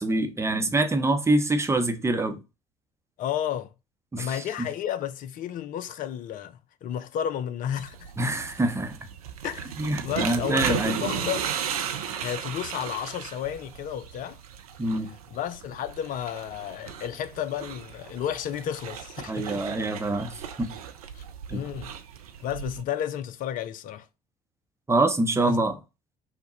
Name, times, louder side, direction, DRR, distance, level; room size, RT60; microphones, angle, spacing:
voice 1, 0.0-2.4 4.1-4.7 8.2-9.0 9.8-11.0 14.8-15.1 19.3-20.7 21.5-21.6 24.9-25.8, right 2 dB, 15° right, 0.8 m, -25 dB
voice 2, 3.2-3.7 4.2-8.1 9.4-9.7 10.0-11.5 12.2-14.4 15.3-19.6 21.1-21.2 21.5-21.9 22.4-24.1 25.4-25.7, left 10 dB, 45° left, 0.5 m, -32 dB
sound 1, 7.8-22.8, right 8 dB, 75° right, 0.5 m, -36 dB
5.9 x 2.2 x 3.9 m
figure-of-eight pair, 55°, 19 cm